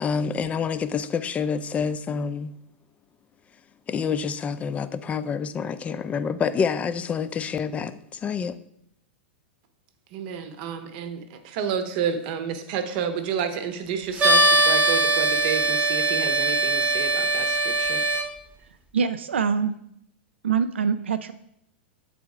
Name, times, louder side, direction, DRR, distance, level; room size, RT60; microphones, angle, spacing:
voice 1, 0.0-2.5 3.9-8.5, left 6 dB, 20° left, 0.4 m, -27 dB
voice 2, 10.1-18.0, right 7 dB, 55° right, 0.9 m, -30 dB
sound 1, 14.2-18.2, right 2 dB, 20° right, 0.9 m, -21 dB
voice 3, 18.9-19.8 20.4-21.3, right 6 dB, 85° right, 0.4 m, -24 dB
7.6 x 4.1 x 4.8 m
hypercardioid pair, 110°, 6 cm